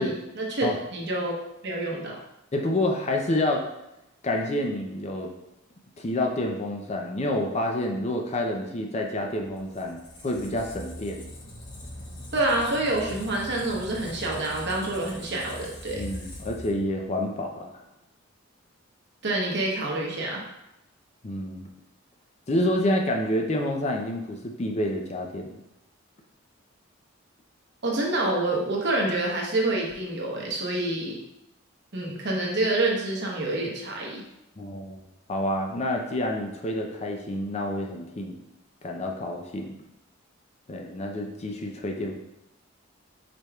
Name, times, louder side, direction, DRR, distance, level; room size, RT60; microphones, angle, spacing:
voice 1, 0.0-1.3 1.6-2.2 12.3-16.1 19.2-20.4 27.8-31.2 31.9-34.2, right 2 dB, 60° right, -1 dB, 0.9 m, -27 dB
voice 2, 2.5-3.6 4.2-5.3 6.0-11.2 15.9-17.7 21.2-21.7 22.5-25.5 34.6-35.0 35.3-38.4 38.8-39.7 40.7-42.2, left 1 dB, 35° left, 2 dB, 0.5 m, -28 dB
Squeak, 9.5-17.2, left 1 dB, 65° left, 1.0 m, -42 dB
5.0 x 4.4 x 2.3 m, 0.89 s
head